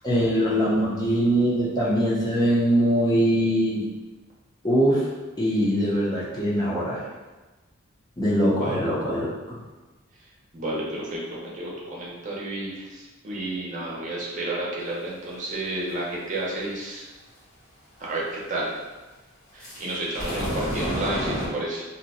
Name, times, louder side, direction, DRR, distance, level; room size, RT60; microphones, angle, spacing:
voice 1, 0.0-3.9 4.6-5.1 5.4-7.1 8.2-9.6, equal, 20° left, -7 dB, 0.6 m, -22 dB
voice 2, 8.4-8.8 10.5-17.0 18.0-18.7 19.5-21.8, right 2 dB, 35° right, -5 dB, 0.7 m, -31 dB
sound 1, 19.6-21.5, equal, 70° left, 1.3 m, -29 dB
2.7 x 2.2 x 4.1 m, 1.2 s
head